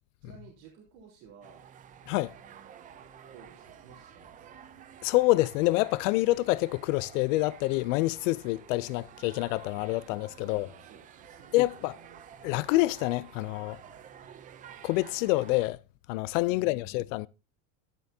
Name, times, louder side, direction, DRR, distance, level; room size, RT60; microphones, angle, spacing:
voice 1, 0.2-1.6 2.4-4.6 8.8-9.0 10.4-12.5 16.5-17.0, right 6 dB, 60° right, 3.8 m, -55 dB
sound 1, 1.4-15.7, right 9 dB, 20° right, 0.5 m, -51 dB
voice 2, 5.0-10.7 11.5-11.9 12.4-13.8 14.8-15.8 16.1-17.3, left 19 dB, 90° left, 0.5 m, -27 dB
12.5 x 11.0 x 2.7 m
cardioid pair, 170°, 37 cm